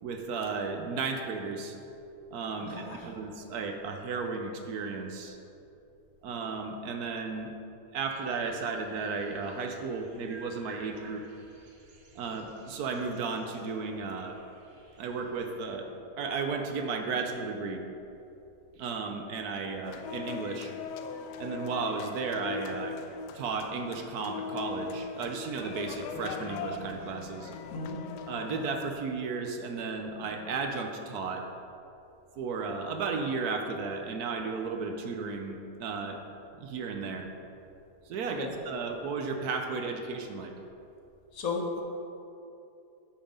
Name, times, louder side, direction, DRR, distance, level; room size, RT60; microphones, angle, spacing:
voice 1, 0.0-1.8 2.3-5.4 6.2-7.5 7.9-11.2 12.1-14.4 15.0-15.9 16.2-17.8 18.8-20.7 21.4-23.0 23.3-27.5 28.3-31.5 32.4-36.2 36.6-37.3 38.1-40.5, right 4 dB, 70° right, 4 dB, 1.1 m, -34 dB
voice 2, 2.6-3.2 27.7-28.0 38.4-38.5 41.3-41.8, left 4 dB, 60° left, 0 dB, 1.4 m, -35 dB
sound 1, 8.1-15.8, right 2 dB, 45° right, 1.3 m, -56 dB
sound 2, 19.9-28.9, left 5 dB, 80° left, 1.2 m, -40 dB
8.8 x 5.7 x 5.2 m, 2.7 s
omnidirectional pair, 1.8 m